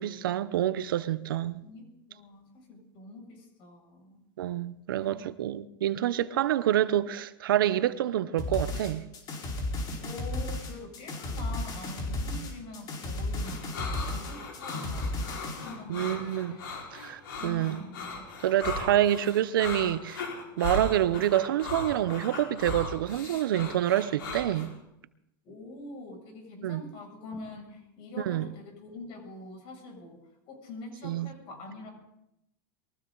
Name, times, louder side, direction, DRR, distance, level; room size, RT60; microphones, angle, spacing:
voice 1, 0.0-1.6 4.4-9.0 12.4-12.5 15.9-16.6 16.9-17.8 18.4-20.3 20.6-24.7 26.6-26.8 28.3-28.5 31.0-31.3, right 12 dB, 85° right, 0.8 m, -27 dB
voice 2, 1.6-4.2 4.9-5.3 10.0-16.9 17.4-18.3 25.4-31.9, left 2 dB, 50° left, 7.1 m, -45 dB
sound 1, 8.4-15.7, left 2 dB, 35° left, 4.5 m, -34 dB
sound 2, 13.4-24.7, left 3 dB, 85° left, 4.9 m, -38 dB
22.5 x 15.0 x 4.0 m
supercardioid pair, 125°, 11 cm